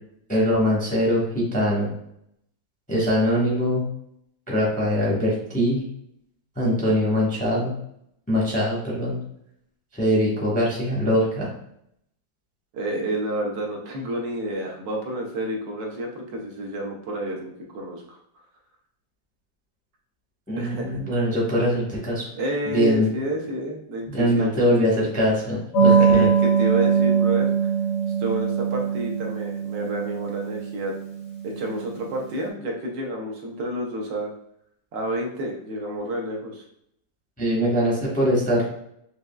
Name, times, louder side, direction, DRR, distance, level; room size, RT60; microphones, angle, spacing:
voice 1, 0.3-1.9 2.9-3.9 4.5-5.8 6.6-7.7 8.3-9.2 9.9-11.5 20.5-22.2 22.7-23.0 24.1-26.3 37.4-38.6, equal, 5° left, -5 dB, 0.7 m, -22 dB
voice 2, 12.7-18.2 20.6-21.0 22.3-25.1 25.9-27.7 28.2-31.0 31.4-34.3 34.9-36.6, right 1 dB, 70° right, 0 dB, 1.4 m, -30 dB
sound 1, 25.7-31.9, right 6 dB, 55° left, 1.0 m, -22 dB
4.9 x 3.0 x 2.3 m, 0.73 s
omnidirectional pair, 2.1 m